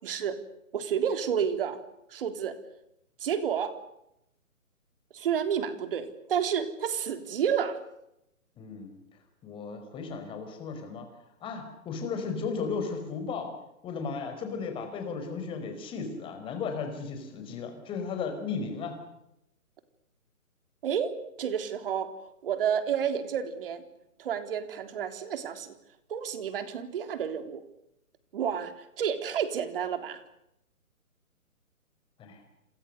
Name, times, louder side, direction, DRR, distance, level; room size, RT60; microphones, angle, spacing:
voice 1, 0.0-0.4 0.7-1.8 2.1-2.6 3.2-3.8 5.1-7.8 20.8-22.1 22.4-23.8 24.2-25.8 26.1-27.6 28.3-30.2, right 8 dB, 40° right, 9 dB, 3.5 m, -30 dB
voice 2, 8.6-9.0 9.4-11.1 11.4-13.5 13.8-18.9 32.2-32.4, left 5 dB, 10° left, 6 dB, 4.7 m, -35 dB
28.5 x 27.5 x 6.7 m, 0.83 s
hypercardioid pair, 155°, 43 cm